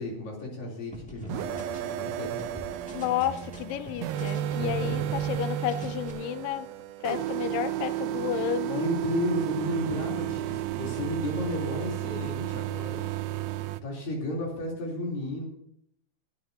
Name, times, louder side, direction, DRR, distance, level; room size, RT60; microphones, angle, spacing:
voice 1, 0.0-2.3 4.6-5.1 8.7-13.0 13.8-15.5, left 1 dB, 60° left, -2 dB, 5.1 m, -33 dB
sound 1, 0.9-5.4 5.7-6.1, equal, 5° left, 1.2 m, -44 dB
sound 2, 1.3-13.8, right 13 dB, 80° right, 2.2 m, -32 dB
voice 2, 2.8-6.7 7.0-8.9, left 12 dB, 85° left, 12 dB, 2.0 m, -31 dB
21.0 x 11.5 x 2.9 m, 0.72 s
omnidirectional pair, 4.5 m